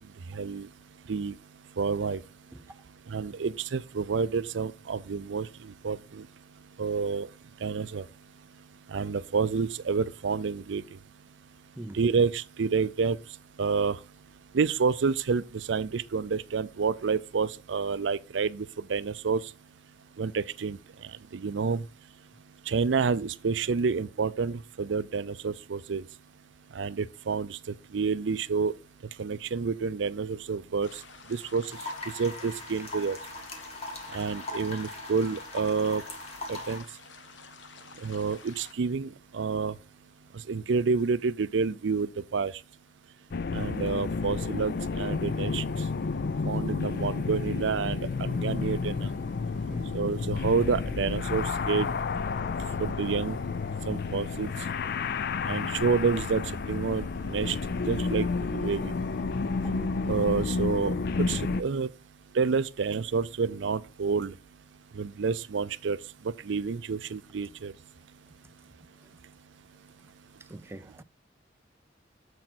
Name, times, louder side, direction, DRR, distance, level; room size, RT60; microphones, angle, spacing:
voice 1, 0.3-0.7 1.1-1.3 1.8-2.2 3.1-6.3 6.8-7.3 7.6-8.1 8.9-10.8 11.9-13.2 13.6-14.0 14.5-19.4 20.2-20.8 21.3-21.8 22.7-26.0 26.7-28.7 29.2-31.0 31.3-31.7 32.1-33.2 34.1-36.0 36.5-36.8 38.0-39.7 40.5-42.5 43.5-45.6 46.4-49.1 49.9-51.9 52.8-53.4 53.9-54.5 55.4-56.4 56.7-57.6 57.9-58.9 60.1-60.9 61.3-61.9 62.3-64.3 64.9-66.0 66.2-67.7, right 5 dB, 70° right, 0.5 m, -29 dB
sound 1, 30.8-38.7, left 5 dB, 75° left, 1.0 m, -50 dB
sound 2, 31.7-36.8, left 2 dB, 35° left, 1.9 m, -40 dB
sound 3, 43.3-61.6, left 4 dB, 55° left, 0.5 m, -31 dB
voice 2, 59.5-59.9 70.5-71.0, right 1 dB, 15° right, 0.4 m, -43 dB
7.3 x 6.3 x 4.3 m
head